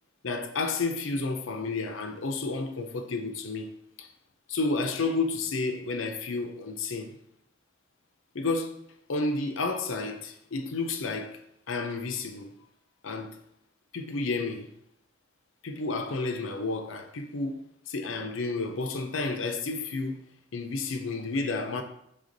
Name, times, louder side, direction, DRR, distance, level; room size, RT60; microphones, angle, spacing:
voice 1, 0.2-4.1 4.5-7.2 8.3-8.8 9.1-11.4 11.7-12.5 13.0-13.4 13.9-14.7 15.6-17.6 17.9-20.2 20.5-21.8, left 3 dB, 85° left, 0.7 m, -31 dB
6.8 x 3.6 x 3.9 m
head